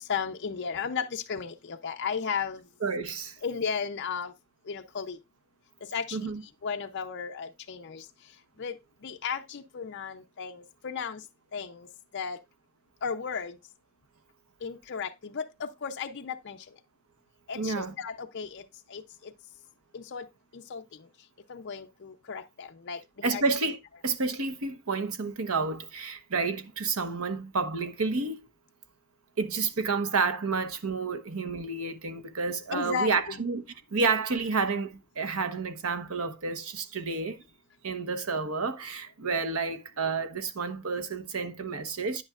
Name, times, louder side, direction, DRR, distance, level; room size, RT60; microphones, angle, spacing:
voice 1, 0.0-2.6 3.4-4.3 4.7-5.2 5.8-6.3 6.6-8.1 8.6-11.2 11.5-11.9 12.1-12.4 13.0-13.6 14.6-16.6 17.5-19.3 19.9-20.3 20.5-21.1 21.5-23.4 32.7-33.4, left 6 dB, 55° left, 0.6 m, -35 dB
voice 2, 2.8-3.4 6.1-6.4 17.5-17.9 23.2-23.8 24.0-28.4 29.4-33.6 33.9-34.9 35.2-37.4 37.8-42.2, right 4 dB, 85° right, 1.0 m, -30 dB
9.7 x 8.6 x 2.4 m
head